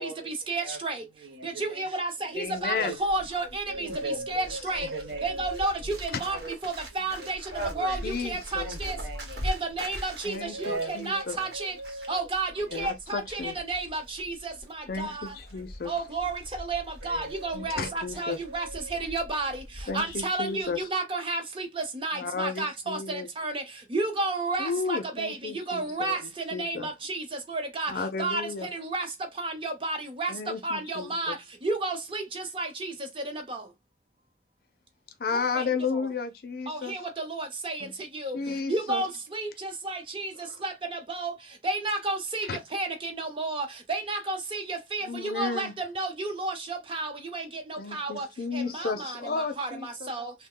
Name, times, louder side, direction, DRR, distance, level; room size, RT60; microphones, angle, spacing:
voice 1, 0.0-1.0 1.4-4.9 5.2-6.4 6.6-7.4 7.7-9.0 9.4-11.7 12.1-15.3 15.9-19.5 19.9-23.6 23.9-25.4 25.7-26.2 26.5-27.2 27.5-27.9 28.2-29.1 29.4-30.3 30.6-31.3 31.6-32.9 33.3-33.6 35.6-35.7 36.7-37.9 38.1-38.4 38.7-40.3 40.6-41.3 41.6-42.5 42.7-48.3 48.5-50.3, right 2 dB, 30° right, 0.7 m, -32 dB
voice 2, 1.2-1.9 2.2-2.3 2.7-3.0 3.4-4.2 4.7-5.5 5.8-5.9 6.2-6.5 6.9-8.1 8.6-9.5 10.6-10.9 11.2-11.5 12.7-12.9 17.0-18.4, right 2 dB, 90° right, 1.3 m, -39 dB
voice 3, 2.3-3.0 4.3-4.6 6.1-6.2 8.0-8.7 10.2-11.4 12.7-13.6 14.9-16.0 17.5-18.4 19.9-20.9 22.1-23.3 24.6-25.8 26.2-26.9 27.9-28.7 30.3-31.3 35.2-37.0 37.8-37.9 38.2-39.1 40.4-40.6 42.4-42.6 45.0-45.7 47.8-50.1, left 4 dB, 55° left, 0.5 m, -33 dB
Bird, 2.4-20.2 20.5-20.8, equal, 65° right, 1.0 m, -41 dB
3.1 x 2.1 x 3.6 m
head